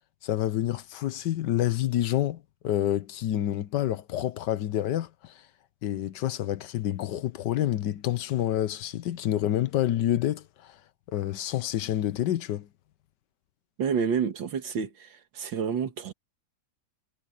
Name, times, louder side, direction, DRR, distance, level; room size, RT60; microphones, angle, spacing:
voice 1, 0.2-5.4 5.8-10.8 11.1-12.7, left 12 dB, 75° left, 1.4 m, -28 dB
voice 2, 13.8-16.1, right 6 dB, 90° right, 2.3 m, -29 dB
omnidirectional pair, 2.0 m